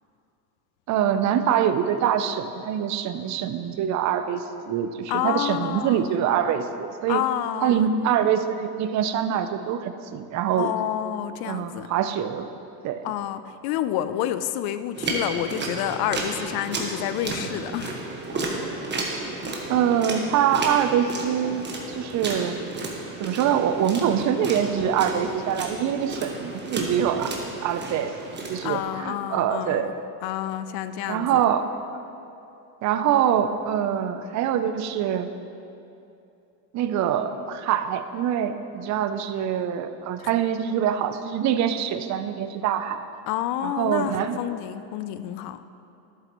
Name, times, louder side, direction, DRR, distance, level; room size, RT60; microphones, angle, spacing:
voice 1, 0.9-7.2 7.6-10.7 11.4-12.5 12.8-13.0 19.7-22.6 23.2-27.3 27.6-28.1 28.5-29.9 31.1-31.7 31.9-32.0 32.8-35.3 36.7-43.1 43.6-44.4, right 9 dB, 35° right, 10 dB, 0.5 m, -24 dB
voice 2, 5.1-6.1 7.1-7.9 10.5-11.9 13.0-18.0 28.6-29.9 30.2-31.4 40.2-40.3 43.3-45.6, left 11 dB, 50° left, 12 dB, 0.5 m, -29 dB
sound 1, 15.0-28.8, right 2 dB, 20° right, 1.3 m, -32 dB
11.0 x 8.0 x 3.0 m, 2.7 s
supercardioid pair, 105°, 49 cm